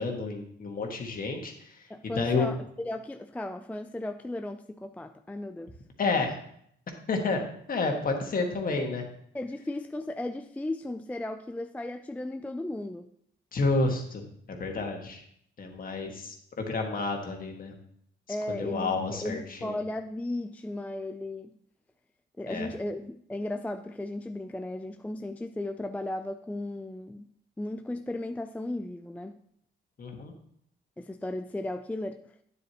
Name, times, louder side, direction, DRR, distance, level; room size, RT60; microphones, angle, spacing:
voice 1, 0.0-1.5 2.2-2.5 6.0-6.4 7.1-7.4 7.7-9.1 13.5-14.2 14.5-15.2 15.6-17.8 18.5-19.8 22.5-22.7 30.0-30.3, left 3 dB, 45° left, 2 dB, 1.7 m, -30 dB
voice 2, 1.9-5.8 9.3-13.1 18.3-21.5 22.4-27.3 27.6-29.4 31.0-32.2, left 1 dB, 5° left, 7 dB, 0.4 m, -35 dB
9.4 x 7.9 x 3.0 m, 0.68 s
cardioid pair, 90°, 20 cm